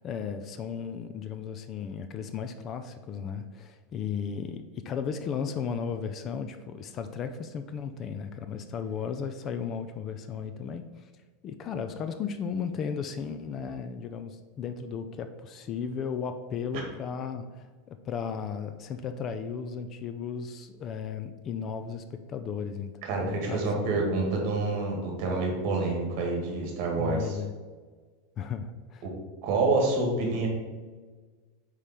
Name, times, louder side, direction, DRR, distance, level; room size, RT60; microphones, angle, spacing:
voice 1, 0.0-11.1 11.4-22.9 23.2-24.0 27.0-27.5 28.4-29.1, left 6 dB, 30° left, 9 dB, 0.3 m, -35 dB
voice 2, 23.0-27.4 29.0-29.1 29.4-30.5, right 3 dB, 50° right, 0 dB, 1.8 m, -27 dB
5.2 x 4.9 x 4.3 m, 1.4 s
supercardioid pair, 160°, 0 cm